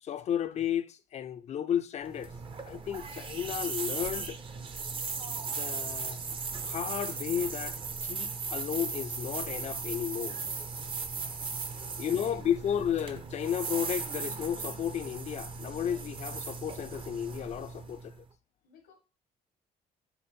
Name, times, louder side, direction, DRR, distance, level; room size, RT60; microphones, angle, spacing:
voice 1, 0.0-2.3 2.7-4.4 5.5-6.2 6.7-10.4 12.0-18.1, left 9 dB, 40° left, 0.4 m, -33 dB
sound 1, 2.0-18.2, right 5 dB, 30° right, 0.6 m, -37 dB
voice 2, 11.0-12.5 18.6-18.9, left 6 dB, 85° left, 1.3 m, -59 dB
5.3 x 2.1 x 4.2 m
cardioid pair, 110°, 17 cm